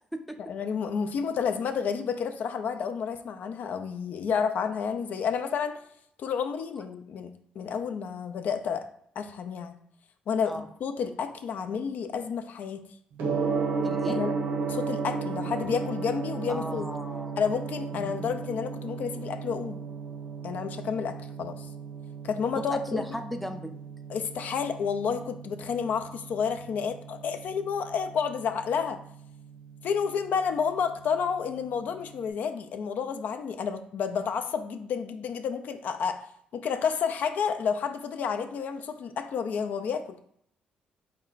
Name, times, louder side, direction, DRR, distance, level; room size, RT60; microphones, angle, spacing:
voice 1, 0.5-5.8 6.2-8.8 9.2-9.7 10.3-12.8 14.1-14.3 14.7-16.8 17.4-19.8 20.4-21.7 22.2-23.1 24.1-29.0 29.8-36.2 36.5-40.0, left 6 dB, 65° left, 8 dB, 0.4 m, -30 dB
Gong, 13.2-32.2, right 5 dB, 85° right, 0.7 m, -35 dB
voice 2, 13.8-14.2 16.5-17.4 17.9-18.3 22.6-23.7, equal, 5° left, 5 dB, 0.4 m, -36 dB
4.3 x 2.2 x 3.9 m, 0.68 s
cardioid pair, 95°, 3 cm